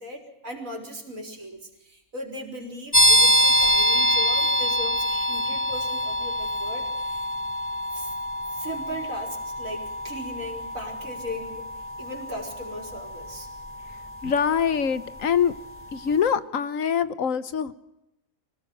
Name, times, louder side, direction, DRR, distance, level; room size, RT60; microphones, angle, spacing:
voice 1, 0.0-7.3 7.9-8.1 8.5-13.5, equal, 75° right, 2 dB, 4.7 m, -38 dB
sound 1, 2.9-15.5, equal, 10° left, 3.4 m, -25 dB
voice 2, 14.2-15.5 15.9-17.7, left 7 dB, 75° left, 14 dB, 1.4 m, -24 dB
25.5 x 17.5 x 7.7 m, 0.88 s
omnidirectional pair, 1.4 m